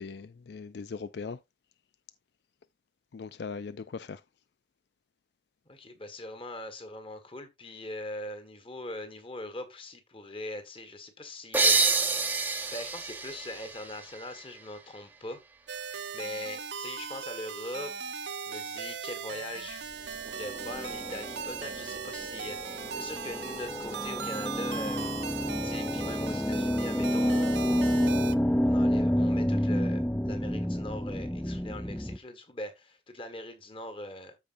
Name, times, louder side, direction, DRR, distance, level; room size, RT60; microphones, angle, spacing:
voice 1, 0.0-1.4 3.1-4.2, left 5 dB, 65° left, 0.4 m, -39 dB
voice 2, 5.7-11.8 12.7-15.4 16.1-19.8 20.2-25.1 25.6-27.9 28.6-34.4, left 1 dB, 30° left, 1.7 m, -41 dB
sound 1, 11.5-15.0, right 4 dB, 10° right, 0.9 m, -28 dB
sound 2, 15.7-28.4, right 6 dB, 70° right, 0.6 m, -38 dB
sound 3, 20.3-32.2, equal, 5° left, 0.4 m, -29 dB
13.5 x 5.0 x 2.6 m
head